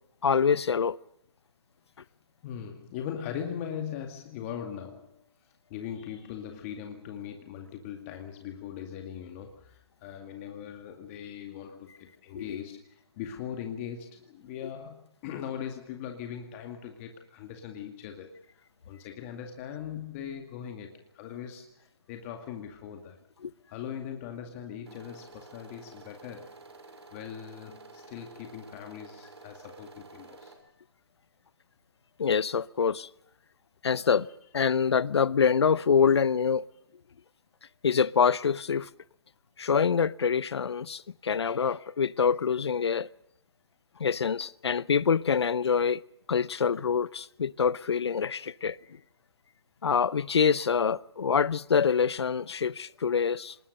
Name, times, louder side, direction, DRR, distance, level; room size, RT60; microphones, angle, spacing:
voice 1, 0.2-1.0 12.3-12.6 23.4-23.5 32.2-33.1 33.8-34.3 34.5-36.6 37.8-38.9 39.6-43.1 44.0-46.0 46.3-48.8 49.8-53.6, left 6 dB, 75° left, 0.8 m, -25 dB
voice 2, 2.4-23.2 23.7-26.5 27.1-30.5 34.1-34.4, left 9 dB, 30° left, 2.3 m, -40 dB
sound 1, 24.8-30.6, right 3 dB, 85° right, 6.8 m, -51 dB
26.5 x 20.0 x 6.7 m
hypercardioid pair, 150°, 14 cm